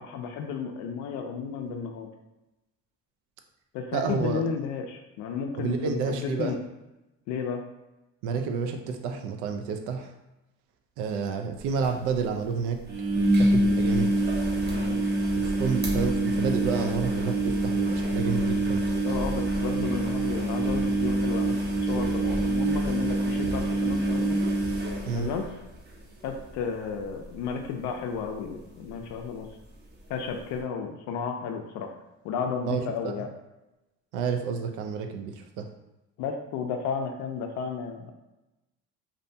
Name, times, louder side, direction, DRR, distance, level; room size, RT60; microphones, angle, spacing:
voice 1, 0.0-2.1 3.7-6.6 7.3-7.6 14.6-15.0 19.0-24.4 25.1-25.5 26.2-29.5 30.1-31.9 32.2-33.3 36.2-38.1, left 6 dB, 70° left, 4 dB, 0.4 m, -33 dB
voice 2, 3.9-4.4 5.5-6.5 8.2-10.1 11.0-12.8 13.3-14.1 15.3-18.8 25.1-25.3 32.7-33.1 34.1-35.7, right 5 dB, 80° right, 5 dB, 0.5 m, -30 dB
sound 1, 11.6-11.7 11.8-11.9 12.9-25.9 26.3-26.7 27.0-27.1 28.9-29.0, right 1 dB, 35° right, 0.6 m, -26 dB
2.6 x 2.1 x 2.6 m, 0.98 s
cardioid pair, 110°, 30 cm